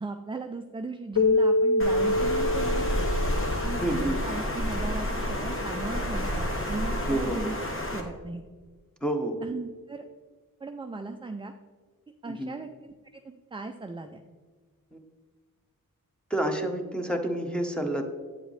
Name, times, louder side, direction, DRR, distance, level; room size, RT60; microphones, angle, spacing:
voice 1, 0.0-3.1 3.6-7.5 7.9-8.4 9.4-10.1 10.6-11.5 12.2-12.9 13.2-14.2, right 3 dB, 15° right, 6 dB, 0.4 m, -37 dB
Keyboard (musical), 1.2-4.4, left 2 dB, 65° left, 0.8 m, -25 dB
Water, 1.8-8.0, equal, 35° left, 1.3 m, -30 dB
voice 2, 3.8-4.2 7.0-7.4 9.0-9.4 12.3-12.5 14.9-15.0 16.3-18.0, right 1 dB, 5° left, 4 dB, 1.0 m, -29 dB
8.4 x 7.8 x 3.3 m, 1.5 s
wide cardioid pair, 80°, 35 cm